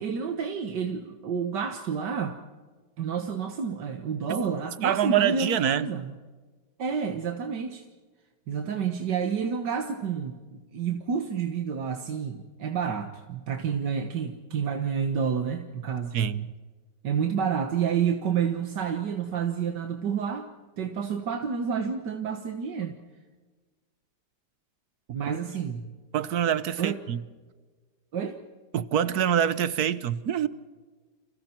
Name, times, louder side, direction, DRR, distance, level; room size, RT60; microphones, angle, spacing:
voice 1, 0.0-2.4 3.0-6.1 6.8-7.9 8.5-16.1 17.0-20.5 20.8-23.0 25.1-25.9 26.8-27.0 28.1-28.4, right 7 dB, 85° right, 5 dB, 2.0 m, -29 dB
voice 2, 4.8-5.9 16.1-16.5 26.1-27.2 28.7-30.5, right 9 dB, 65° right, 15 dB, 1.4 m, -25 dB
30.0 x 28.0 x 4.5 m, 1.4 s
omnidirectional pair, 1.8 m